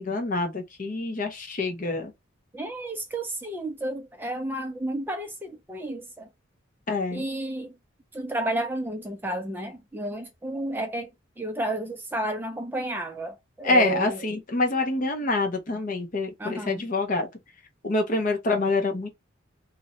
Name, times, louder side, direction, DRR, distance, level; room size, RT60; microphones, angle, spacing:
voice 1, 0.0-2.1 6.9-7.2 13.6-17.3 17.8-19.1, left 2 dB, 40° left, 0.7 m, -26 dB
voice 2, 2.5-6.3 7.1-7.7 8.1-11.1 11.4-14.2 16.4-16.9, right 1 dB, 10° right, 0.4 m, -31 dB
2.6 x 2.1 x 4.0 m
head